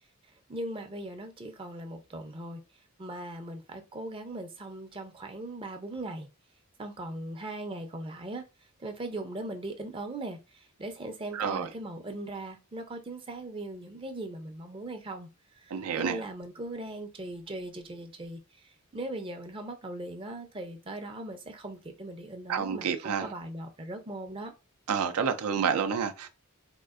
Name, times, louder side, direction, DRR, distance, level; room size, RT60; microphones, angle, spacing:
voice 1, 0.5-2.6 3.0-6.3 6.8-8.4 8.8-15.3 15.5-24.5, right 1 dB, 25° right, 0.4 m, -39 dB
voice 2, 11.3-11.7 15.7-16.2 22.5-23.3 24.9-26.3, right 7 dB, 90° right, 0.4 m, -29 dB
3.5 x 2.4 x 2.4 m
head